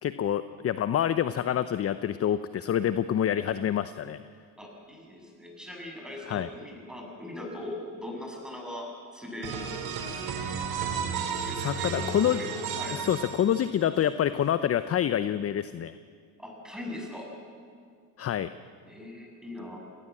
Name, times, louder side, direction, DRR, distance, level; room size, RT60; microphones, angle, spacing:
voice 1, 0.0-4.2 6.2-6.5 11.6-12.4 12.9-15.9 18.2-18.5, left 10 dB, 30° left, 13 dB, 0.8 m, -27 dB
voice 2, 4.6-9.9 11.2-13.0 16.4-17.3 18.9-19.8, left 1 dB, ahead, 0 dB, 7.7 m, -40 dB
sound 1, 9.4-14.0, right 6 dB, 55° right, 3.8 m, -33 dB
28.5 x 18.5 x 7.6 m, 2.2 s
hypercardioid pair, 85°, 45 cm